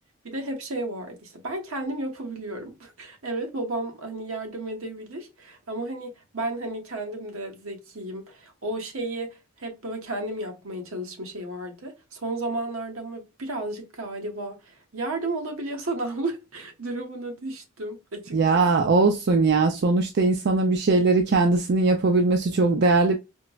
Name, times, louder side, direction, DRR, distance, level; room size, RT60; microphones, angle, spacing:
voice 1, 0.2-18.9, right 2 dB, 75° right, 1.0 m, -33 dB
voice 2, 18.3-23.2, right 3 dB, 50° right, 0.4 m, -20 dB
4.3 x 2.0 x 2.3 m
head